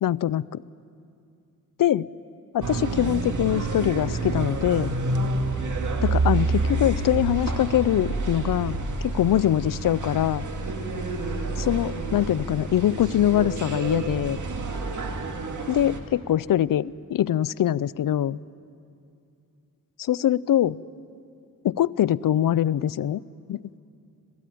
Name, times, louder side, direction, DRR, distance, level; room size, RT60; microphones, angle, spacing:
voice 1, 0.0-0.6 1.8-2.1 2.5-4.9 6.0-10.5 11.6-14.4 15.7-18.4 20.0-20.8 21.6-23.2 23.5-23.6, left 11 dB, 65° left, 20 dB, 0.5 m, -23 dB
sound 1, 2.6-16.0, right 2 dB, 55° right, 2.1 m, -28 dB
26.0 x 17.5 x 9.2 m, 2.5 s
wide cardioid pair, 95°, 35 cm